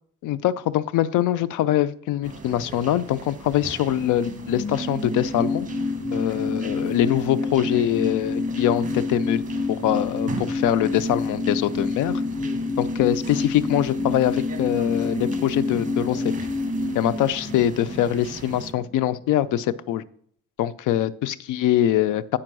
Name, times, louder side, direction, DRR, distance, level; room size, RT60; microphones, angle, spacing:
voice 1, 0.2-5.7 6.1-9.4 9.7-12.2 12.8-16.3 16.9-20.0 20.6-22.4, left 12 dB, 85° left, 17 dB, 0.5 m, -23 dB
sound 1, 2.2-18.7, right 5 dB, 25° right, 1.3 m, -39 dB
sound 2, 4.0-19.0 19.3-19.4, left 3 dB, 30° left, 3.6 m, -28 dB
8.7 x 5.3 x 6.2 m, 0.63 s
cardioid pair, 90°, 30 cm